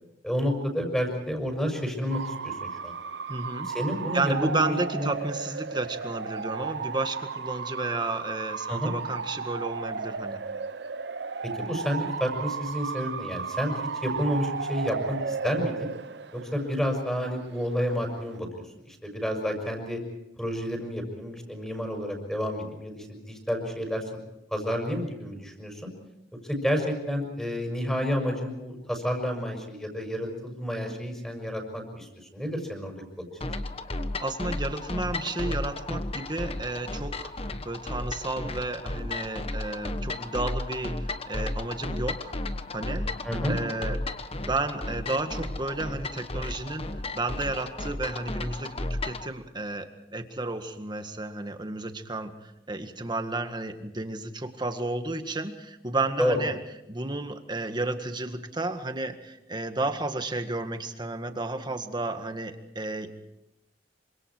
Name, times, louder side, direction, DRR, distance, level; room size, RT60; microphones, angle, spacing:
voice 1, 0.2-2.9 3.6-5.1 8.7-8.9 11.4-15.9 16.3-20.0 20.4-24.0 24.5-25.9 26.4-33.3 43.2-43.6 56.2-56.4, equal, 5° left, 3 dB, 6.2 m, -30 dB
Bark / Motor vehicle (road) / Siren, 2.1-18.4, right 5 dB, 75° right, 0.8 m, -34 dB
voice 2, 3.3-3.7 4.1-10.4 34.2-42.3 42.7-43.1 43.5-44.0 44.4-56.6 56.9-63.2, right 2 dB, 25° right, 7 dB, 1.8 m, -32 dB
sound 1, 33.4-49.3, left 2 dB, 35° left, 1.2 m, -34 dB
27.0 x 25.5 x 4.7 m, 0.88 s
head